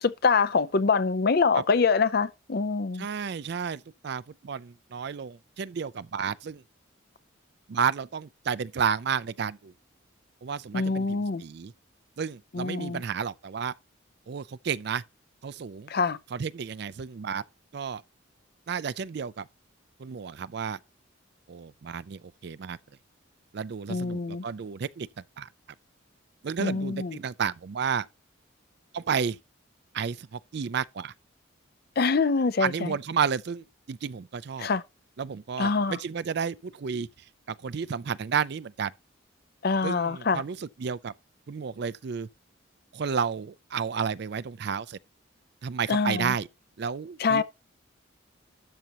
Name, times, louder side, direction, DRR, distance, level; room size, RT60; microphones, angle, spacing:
voice 1, 0.0-3.1 10.7-11.4 12.5-13.0 15.9-16.2 23.9-24.4 26.6-27.2 32.0-32.9 34.6-34.8 35.6-36.0 39.6-40.4 45.9-46.3 47.2-47.4, left 4 dB, 50° left, 0.5 m, -25 dB
voice 2, 2.9-6.6 7.7-9.7 10.4-11.7 12.2-13.7 14.3-15.0 15.4-15.9 16.3-17.4 17.7-18.0 18.7-19.5 20.0-20.8 21.5-22.8 23.5-25.1 25.4-25.5 26.4-28.1 28.9-29.4 29.9-31.1 32.6-34.7 35.2-37.1 37.5-38.9 39.8-41.1 41.5-42.3 42.9-45.0 45.6-46.5 46.8-47.4, right 6 dB, 55° right, 0.4 m, -31 dB
12.5 x 6.7 x 2.9 m
head